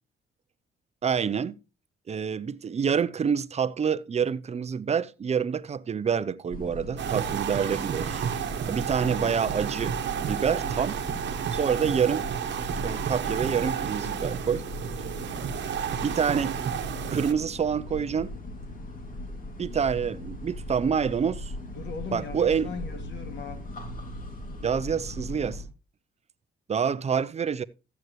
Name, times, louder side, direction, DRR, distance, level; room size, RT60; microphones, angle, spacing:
voice 1, 1.0-1.6 2.1-11.0 11.5-12.3 12.8-14.6 16.0-16.6 17.1-18.3 19.6-21.5 22.1-22.7 24.6-25.6 26.7-27.6, right 7 dB, 35° right, 0.6 m, -27 dB
sound 1, 6.5-25.6, left 1 dB, 45° left, 2.5 m, -39 dB
sound 2, 7.0-17.3, right 9 dB, 65° right, 1.2 m, -31 dB
voice 2, 9.0-9.4 21.7-23.7, left 5 dB, 65° left, 2.2 m, -39 dB
13.5 x 8.1 x 3.1 m
cardioid pair, 90°, 20 cm